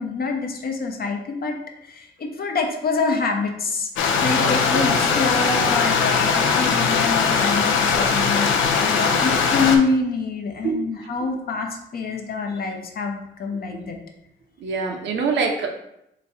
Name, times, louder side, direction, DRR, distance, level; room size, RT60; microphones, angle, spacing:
voice 1, 0.0-8.5 8.8-14.0, left 4 dB, 50° left, 3 dB, 0.8 m, -26 dB
Stream, 4.0-9.8, left 5 dB, 80° left, 0.6 m, -20 dB
voice 2, 4.3-5.0 9.0-9.4 10.6-10.8 13.7-13.8 14.6-15.7, right 4 dB, 65° right, 2 dB, 0.8 m, -26 dB
3.5 x 3.1 x 4.2 m, 0.78 s
cardioid pair, 90°, 20 cm